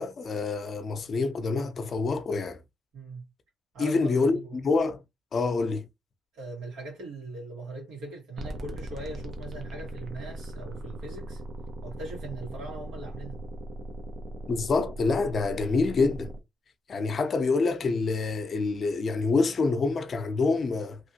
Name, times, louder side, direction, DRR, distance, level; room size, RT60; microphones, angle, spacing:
voice 1, 0.0-2.6 3.8-4.4 4.6-5.0 5.3-5.8 14.5-16.3 16.9-21.0, left 3 dB, 50° left, 0.6 m, -26 dB
voice 2, 2.9-3.2 3.7-4.6 6.3-11.4 11.8-13.4, right 2 dB, 80° right, 1.9 m, -40 dB
sound 1, 8.4-16.4, right 1 dB, 55° right, 0.9 m, -39 dB
3.1 x 2.6 x 2.7 m
cardioid pair, 80°, 0 cm